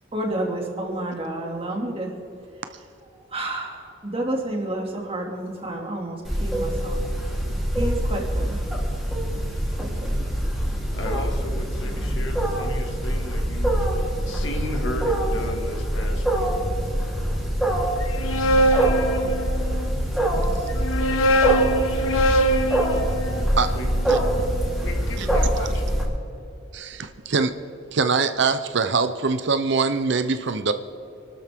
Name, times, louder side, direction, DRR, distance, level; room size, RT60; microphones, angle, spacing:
voice 1, 0.1-2.1 3.3-7.0 7.8-8.6 9.8-10.2, right 1 dB, 30° right, 0 dB, 2.4 m, -30 dB
Wild animals, 6.2-26.0, right 1 dB, ahead, 3.6 m, -24 dB
voice 2, 10.9-16.5 23.7-23.9 24.8-25.9, left 1 dB, 65° left, 2 dB, 2.2 m, -35 dB
sound 1, 18.0-19.9 20.7-24.8, right 1 dB, 80° left, 1.4 m, -23 dB
voice 3, 26.7-27.5 27.9-30.7, right 4 dB, 60° right, 10 dB, 0.7 m, -23 dB
27.0 x 12.5 x 3.7 m, 2.8 s
head